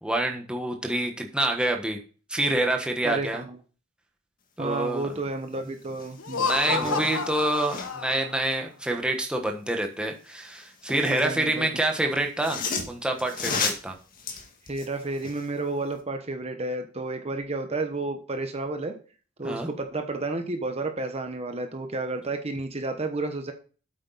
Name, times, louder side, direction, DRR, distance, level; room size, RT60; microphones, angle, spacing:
voice 1, 0.0-2.0 2.3-3.4 4.6-5.1 5.6-5.7 6.4-12.6 12.9-14.0 19.4-19.7, right 1 dB, 5° right, 2 dB, 1.3 m, -27 dB
voice 2, 3.0-3.6 4.6-7.1 11.0-11.7 14.7-19.0 19.4-23.5, right 2 dB, 30° right, 6 dB, 1.1 m, -31 dB
sound 1, 5.5-5.6 5.9-8.1 10.3-11.4 12.2-15.5 15.9-16.0, left 5 dB, 45° left, 1.9 m, -34 dB
Laughter, 6.2-8.5, left 5 dB, 80° left, 0.8 m, -30 dB
8.7 x 8.3 x 4.1 m, 0.38 s
head